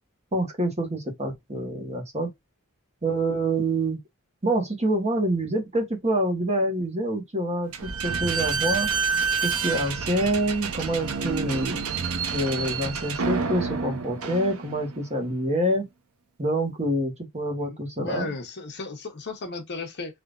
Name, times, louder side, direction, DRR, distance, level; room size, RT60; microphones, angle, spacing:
voice 1, 0.3-2.3 3.0-4.0 4.4-8.9 9.4-11.8 12.3-15.9 16.4-18.3, right 1 dB, 30° right, 1.2 m, -26 dB
Slam / Squeak, 7.7-15.0, right 5 dB, 70° right, 0.6 m, -28 dB
voice 2, 17.6-20.2, left 3 dB, 50° left, 0.9 m, -35 dB
3.5 x 2.8 x 2.4 m
head